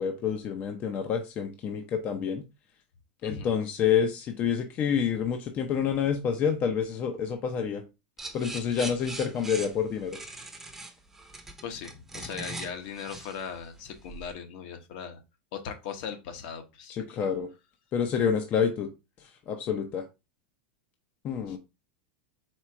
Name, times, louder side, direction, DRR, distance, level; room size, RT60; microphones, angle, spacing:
voice 1, 0.0-2.4 3.2-7.8 8.3-10.2 16.9-17.5 17.9-18.9 19.5-20.0 21.2-21.6, left 7 dB, 35° left, 5 dB, 0.6 m, -28 dB
sound 1, 8.2-14.3, right 2 dB, 5° right, 0.8 m, -41 dB
voice 2, 11.6-15.2 15.5-17.3 21.5-21.6, left 7 dB, 60° left, 6 dB, 1.0 m, -39 dB
4.5 x 2.4 x 4.6 m, 0.26 s
supercardioid pair, 135°, 5 cm